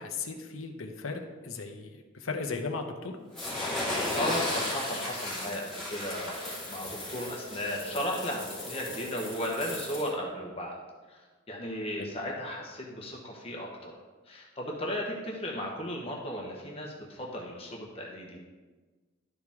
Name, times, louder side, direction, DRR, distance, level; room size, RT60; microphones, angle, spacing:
voice 1, 0.0-3.1 12.0-12.1, left 4 dB, 90° left, 4 dB, 0.9 m, -36 dB
sound 1, 3.3-10.1, left 1 dB, 5° left, 2.3 m, -35 dB
voice 2, 3.9-10.8 11.1-11.2 11.5-13.9 14.3-18.4, equal, 30° left, -2 dB, 1.1 m, -35 dB
12.0 x 4.9 x 3.6 m, 1.3 s
head